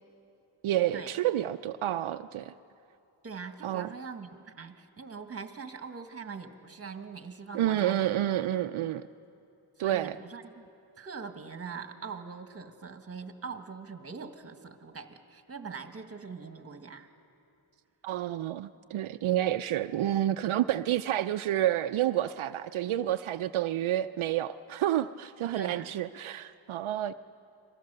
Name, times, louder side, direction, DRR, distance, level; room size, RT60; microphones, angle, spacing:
voice 1, 0.6-2.5 3.6-3.9 7.5-9.0 9.8-10.2 18.0-27.1, right 12 dB, 75° right, 9 dB, 0.6 m, -29 dB
voice 2, 3.2-8.1 9.8-10.7 11.0-17.1 25.5-26.0, right 5 dB, 30° right, 7 dB, 1.5 m, -42 dB
29.5 x 23.0 x 6.7 m, 2.7 s
wide cardioid pair, 130°, 49 cm